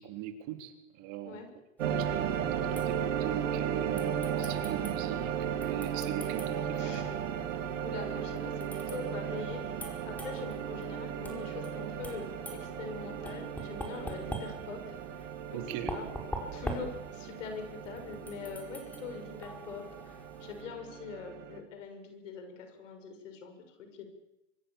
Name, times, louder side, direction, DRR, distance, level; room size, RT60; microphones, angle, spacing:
voice 1, 0.0-1.4 1.9-7.1 15.5-15.9, right 10 dB, 50° right, 7 dB, 3.7 m, -40 dB
sound 1, 1.8-20.6, equal, 5° left, 4.9 m, -46 dB
sound 2, 1.8-21.6, right 9 dB, 75° right, 4.0 m, -36 dB
voice 2, 6.8-7.1 7.8-12.3 12.6-15.6 15.9-16.0 16.5-24.1, left 5 dB, 75° left, 6 dB, 6.7 m, -43 dB
25.0 x 24.0 x 7.4 m, 0.96 s
hypercardioid pair, 110°, 38 cm